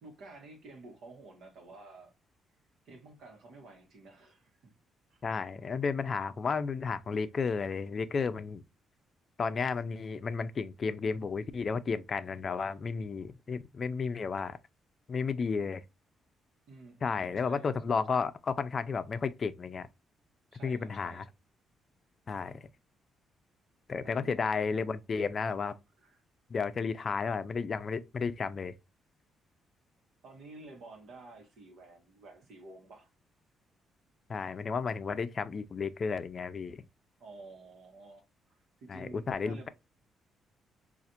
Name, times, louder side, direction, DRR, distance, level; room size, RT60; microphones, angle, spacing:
voice 1, 0.0-2.1 2.8-4.7 5.1-5.2 16.7-18.0 20.5-21.3 24.0-24.3 26.0-26.2 30.2-33.1 37.2-38.2 38.5-39.7, right 3 dB, 80° right, 1.1 m, -51 dB
voice 2, 5.2-8.6 9.4-14.6 15.1-15.8 17.0-19.9 20.6-21.2 22.3-22.7 23.9-25.7 26.5-28.7 34.3-36.8 38.9-39.7, left 5 dB, 40° left, 0.4 m, -33 dB
4.2 x 2.5 x 2.4 m
cardioid pair, 90°, 0 cm